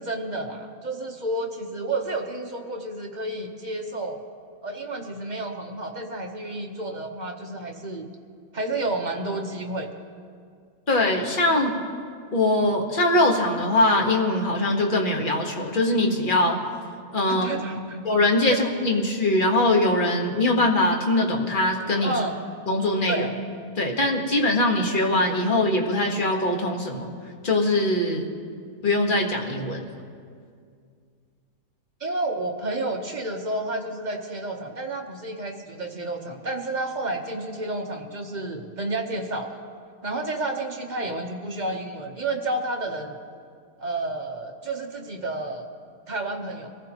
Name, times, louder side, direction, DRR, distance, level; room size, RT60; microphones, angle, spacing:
voice 1, 0.0-4.2 4.6-8.1 8.5-9.9 17.3-18.1 18.4-18.6 22.0-22.4 23.1-23.3 32.0-39.6 40.0-43.2 43.8-45.7 46.1-46.7, right 2 dB, 35° right, 2 dB, 0.9 m, -30 dB
voice 2, 10.9-11.8 12.3-16.6 17.1-17.5 18.0-22.2 22.7-23.3 23.8-27.1 27.4-28.3 28.8-29.8, left 2 dB, 35° left, 1 dB, 1.5 m, -22 dB
23.0 x 15.0 x 3.0 m, 2.2 s
omnidirectional pair, 1.6 m